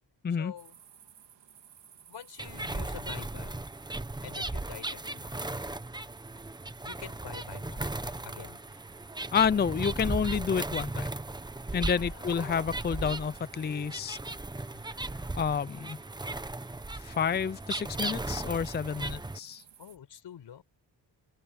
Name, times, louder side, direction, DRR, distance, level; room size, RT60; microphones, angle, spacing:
voice 1, 0.4-0.8 2.1-3.5 4.2-5.3 6.9-7.8 8.2-8.6 11.9-12.6 19.8-20.6, left 9 dB, 85° left, 5.4 m, -46 dB
sound 1, 0.6-20.0, right 8 dB, 85° right, 3.7 m, -56 dB
sound 2, 2.4-19.4, right 2 dB, 10° right, 0.9 m, -37 dB
voice 2, 9.3-11.1 11.7-14.2 15.4-16.0 17.0-19.6, left 7 dB, 25° left, 0.5 m, -29 dB
sound 3, 11.6-19.1, equal, 40° right, 4.6 m, -64 dB
open air
wide cardioid pair, 110°, 41 cm